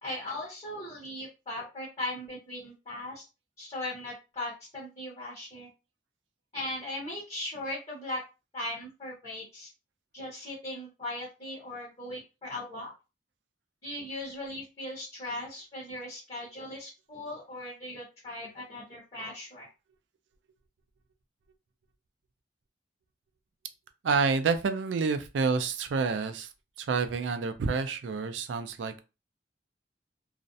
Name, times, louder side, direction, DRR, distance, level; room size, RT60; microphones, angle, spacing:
voice 1, 0.0-3.2 3.6-5.7 6.5-8.2 8.5-9.7 10.1-12.9 13.8-19.7, left 1 dB, 35° left, -4 dB, 0.8 m, -38 dB
voice 2, 24.0-26.5 26.8-29.0, right 5 dB, 90° right, 9 dB, 0.4 m, -28 dB
2.4 x 2.0 x 2.6 m, 0.29 s
head